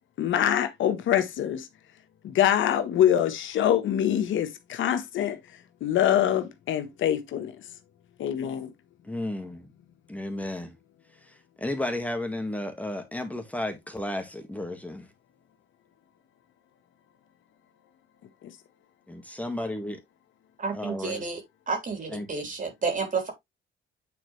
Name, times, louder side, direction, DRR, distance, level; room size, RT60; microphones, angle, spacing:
voice 1, 0.2-1.7 2.2-5.4 5.8-7.6 8.2-8.7 18.4-18.5, left 10 dB, 75° left, 1.2 m, -24 dB
voice 2, 9.0-9.7 10.1-10.7 11.6-15.1 19.1-20.0 20.7-21.2 22.1-22.3, left 1 dB, 5° left, 1.7 m, -33 dB
voice 3, 20.6-21.4 21.7-23.3, right 4 dB, 40° right, 3.5 m, -30 dB
9.0 x 4.3 x 3.1 m
cardioid pair, 90°, 20 cm